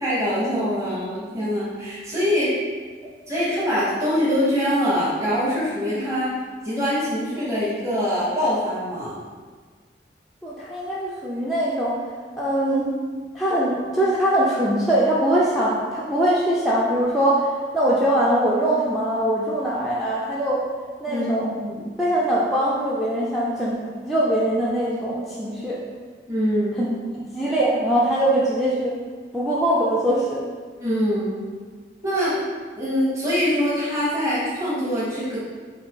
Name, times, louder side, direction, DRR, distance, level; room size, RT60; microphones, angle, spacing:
voice 1, 0.0-2.5 3.3-6.3 6.6-9.1 21.1-21.9 26.3-26.8 30.8-31.4 32.0-32.4 32.8-35.4, equal, 15° right, -9 dB, 0.9 m, -24 dB
voice 2, 10.4-12.0 12.4-12.9 13.3-17.5 17.7-20.6 21.0-21.5 22.0-23.8 24.0-25.8 26.8-26.9 27.3-29.0 29.3-30.4, right 1 dB, ahead, -7 dB, 0.4 m, -22 dB
4.3 x 2.7 x 3.5 m, 1.5 s
head